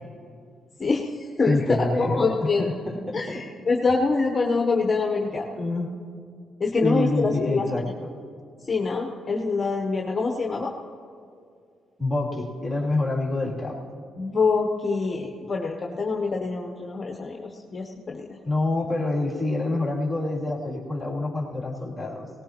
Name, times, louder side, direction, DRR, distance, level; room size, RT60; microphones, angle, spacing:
voice 1, 0.8-2.6 3.1-5.5 6.6-7.7 8.7-10.7 14.2-18.3, left 4 dB, 30° left, 1 dB, 1.0 m, -25 dB
voice 2, 1.4-3.5 5.5-5.9 6.8-8.1 12.0-13.8 18.4-22.3, left 2 dB, 5° left, -4 dB, 3.0 m, -27 dB
18.5 x 18.0 x 3.0 m, 2.3 s
cardioid pair, 90°, 0 cm